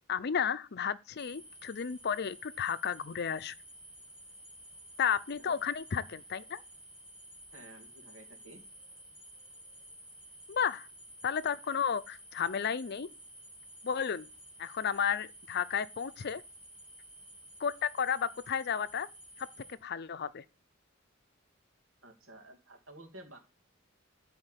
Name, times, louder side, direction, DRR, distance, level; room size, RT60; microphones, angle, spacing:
voice 1, 0.1-3.5 5.0-6.6 10.5-10.9 11.2-13.1 13.8-14.3 14.6-16.4 17.6-19.1 19.4-19.5 19.8-20.4, left 7 dB, 55° left, 0.5 m, -33 dB
sound 1, 1.2-19.7, right 1 dB, 5° right, 2.0 m, -53 dB
voice 2, 7.5-8.6 22.0-23.4, right 1 dB, 80° right, 2.6 m, -52 dB
13.0 x 4.4 x 8.2 m
head